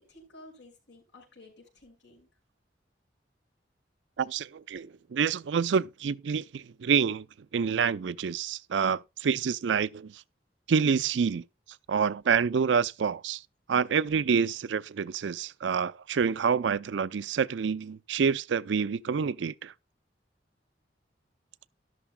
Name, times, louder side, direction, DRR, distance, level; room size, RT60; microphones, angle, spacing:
voice 1, 0.0-2.3, left 2 dB, 85° left, 6.0 m, -53 dB
voice 2, 4.2-7.3 7.5-10.1 10.7-11.4 11.9-13.4 13.7-19.7, right 6 dB, 90° right, 0.4 m, -27 dB
13.0 x 12.0 x 2.2 m
head